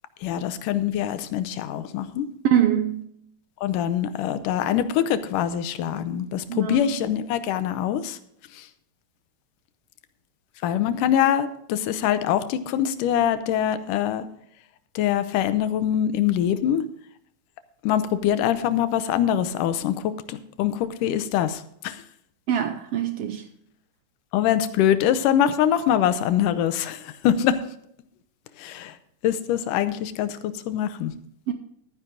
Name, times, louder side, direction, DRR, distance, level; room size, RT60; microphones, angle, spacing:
voice 1, 0.2-2.3 3.6-8.2 8.5-8.7 10.6-14.3 15.0-16.8 17.8-22.0 24.3-27.6 28.6-29.0 29.2-31.1, left 10 dB, 85° left, 12 dB, 2.3 m, -24 dB
voice 2, 2.4-3.0 6.5-6.8 22.5-23.4 31.5-31.6, right 10 dB, 80° right, 8 dB, 1.3 m, -23 dB
12.5 x 10.0 x 3.8 m, 0.70 s
omnidirectional pair, 3.7 m